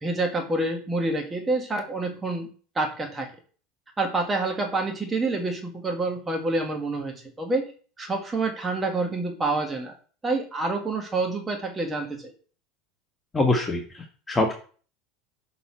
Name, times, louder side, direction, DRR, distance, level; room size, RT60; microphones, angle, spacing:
voice 1, 0.0-2.5 2.8-3.3 4.0-7.7 8.0-9.9 10.2-12.3, right 2 dB, 20° right, 2 dB, 1.9 m, -27 dB
voice 2, 13.3-14.5, left 2 dB, 20° left, 2 dB, 1.4 m, -24 dB
7.1 x 5.9 x 4.5 m, 0.41 s
figure-of-eight pair, 75°, 0 cm